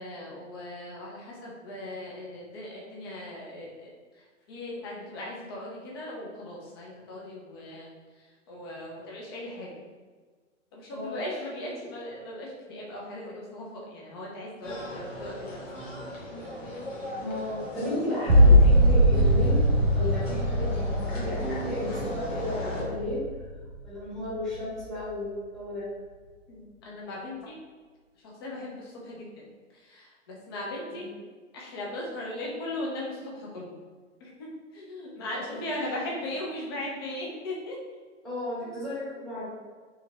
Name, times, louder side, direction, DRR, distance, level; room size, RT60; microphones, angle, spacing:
voice 1, 0.0-7.9 8.1-9.7 10.7-16.1 26.5-27.6 28.2-29.4 29.7-31.1 31.5-33.7 34.2-37.8, left 1 dB, 20° left, -3 dB, 0.4 m, -38 dB
sound 1, 14.6-22.8, equal, 75° left, 1.2 m, -37 dB
voice 2, 17.2-19.6 19.9-23.2 23.8-25.8 30.9-31.1 35.3-35.9 38.2-39.5, left 1 dB, ahead, -10 dB, 1.0 m, -34 dB
sound 2, 18.3-23.7 24.2-24.8, equal, 55° right, 0.6 m, -21 dB
3.2 x 3.0 x 2.2 m, 1.5 s
figure-of-eight pair, 110°, 38 cm